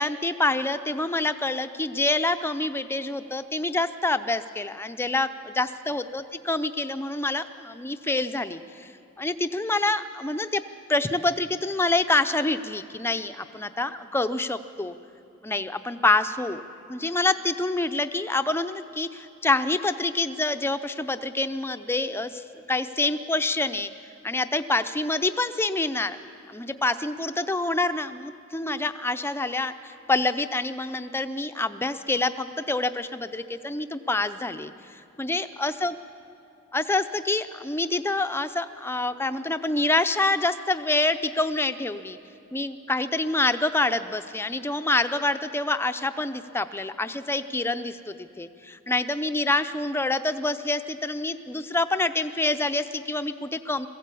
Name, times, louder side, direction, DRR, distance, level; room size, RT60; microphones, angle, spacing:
voice 1, 0.0-8.9 9.2-10.6 10.9-14.9 15.4-16.6 16.9-23.9 24.2-26.2 26.5-34.7 35.2-36.0 36.7-42.2 42.5-53.9, left 2 dB, 10° left, 10 dB, 0.6 m, -26 dB
21.5 x 15.5 x 8.4 m, 2.6 s
head